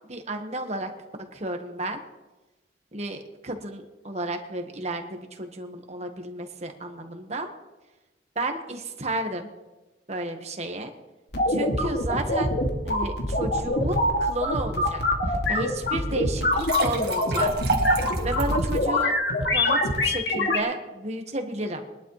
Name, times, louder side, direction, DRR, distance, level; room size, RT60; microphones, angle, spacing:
voice 1, 0.1-0.9 1.3-2.0 2.9-7.5 8.3-9.5 10.1-10.9 11.5-12.6 12.8-17.5 18.2-19.1 19.5-21.9, right 2 dB, 35° right, 4 dB, 1.5 m, -32 dB
sound 1, 11.3-20.6, left 1 dB, 65° left, 2.4 m, -24 dB
sound 2, 16.4-18.8, right 3 dB, 60° right, 1.9 m, -28 dB
22.5 x 11.5 x 3.3 m, 1.1 s
head